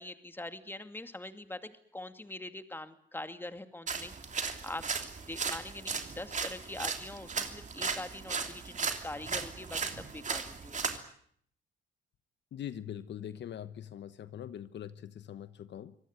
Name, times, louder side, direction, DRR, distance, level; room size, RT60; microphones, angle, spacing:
voice 1, 0.0-4.9 5.3-10.8, left 2 dB, 10° left, 9 dB, 2.3 m, -43 dB
sound 1, 3.9-11.0, right 5 dB, 40° right, 3.0 m, -36 dB
voice 2, 12.5-15.9, left 10 dB, 65° left, 13 dB, 1.1 m, -42 dB
25.0 x 18.0 x 9.7 m, 0.65 s
cardioid pair, 90°, 20 cm